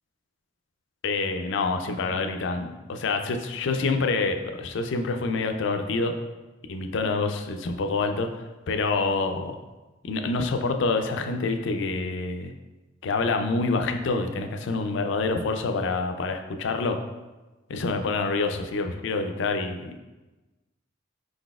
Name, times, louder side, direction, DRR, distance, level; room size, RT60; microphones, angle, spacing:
voice 1, 1.0-6.1 6.7-8.3 8.7-9.6 10.0-12.5 13.0-17.0 17.7-20.0, left 3 dB, 65° left, 6 dB, 0.4 m, -27 dB
4.9 x 4.0 x 2.3 m, 1.1 s
head